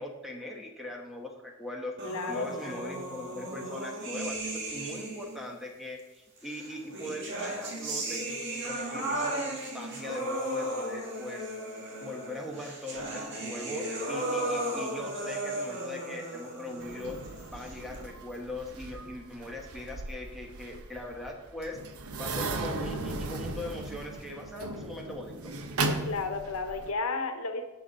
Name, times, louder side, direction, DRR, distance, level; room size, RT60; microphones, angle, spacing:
voice 1, 0.0-1.9 2.3-11.5 12.0-17.2 17.5-21.8 22.2-25.5, left 1 dB, ahead, 1 dB, 1.1 m, -40 dB
voice 2, 2.0-3.0 26.0-27.6, left 3 dB, 80° left, 7 dB, 1.0 m, -33 dB
sound 1, 2.0-5.4 6.4-18.0, right 1 dB, 55° right, 1.9 m, -35 dB
sound 2, 16.8-26.9, right 3 dB, 85° right, 0.9 m, -37 dB
11.5 x 6.9 x 4.0 m, 1.1 s
head